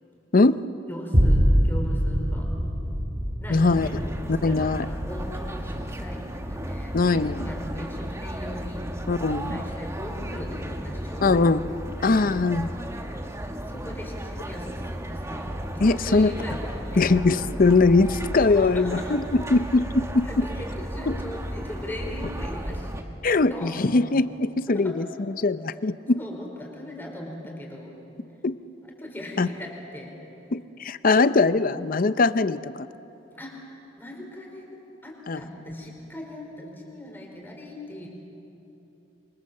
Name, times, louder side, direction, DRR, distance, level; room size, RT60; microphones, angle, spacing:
voice 1, 0.9-2.5 3.4-9.0 9.3-11.4 12.6-12.9 13.6-17.2 18.3-19.2 20.2-22.9 23.5-24.0 24.7-24.9 26.2-27.9 28.8-30.1 33.3-33.5 34.0-34.7 35.0-38.1, left 1 dB, 10° left, -1 dB, 4.9 m, -39 dB
sound 1, 1.1-9.7 10.2-10.3, equal, 40° right, 3.4 m, -26 dB
voice 2, 3.5-3.9 4.3-4.9 6.9-7.5 9.1-9.6 11.2-11.6 12.0-12.7 15.8-16.3 17.0-20.4 21.1-21.2 23.2-25.1 25.4-26.2 28.4-28.5 29.4-29.5 30.5-32.9 35.3-35.4, left 3 dB, 50° left, 14 dB, 0.6 m, -21 dB
sound 2, 3.7-23.0, equal, 15° right, 1.4 m, -34 dB
27.0 x 24.0 x 7.7 m, 3.0 s
head